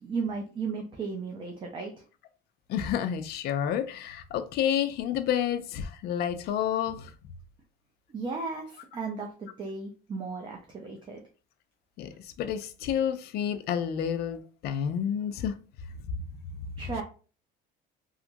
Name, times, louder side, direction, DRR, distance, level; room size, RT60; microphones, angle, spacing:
voice 1, 0.0-2.0 8.1-11.2 16.8-17.0, right 4 dB, 25° right, 0.4 m, -35 dB
voice 2, 2.7-7.1 12.0-15.5, left 9 dB, 55° left, 0.4 m, -29 dB
2.8 x 2.4 x 2.5 m
cardioid pair, 145°, 20 cm